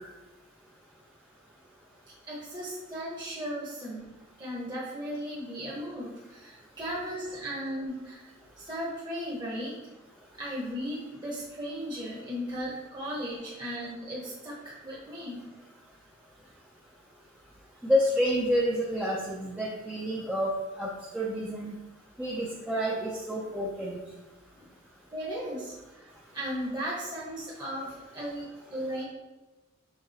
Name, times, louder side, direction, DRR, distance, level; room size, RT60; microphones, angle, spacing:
voice 1, 2.3-4.1 4.4-8.2 8.6-9.7 10.4-15.4 25.1-29.0, equal, 20° right, -6 dB, 1.1 m, -36 dB
voice 2, 17.8-21.8 22.2-24.0, equal, 5° right, -4 dB, 0.6 m, -29 dB
5.9 x 3.9 x 4.1 m, 1.1 s
head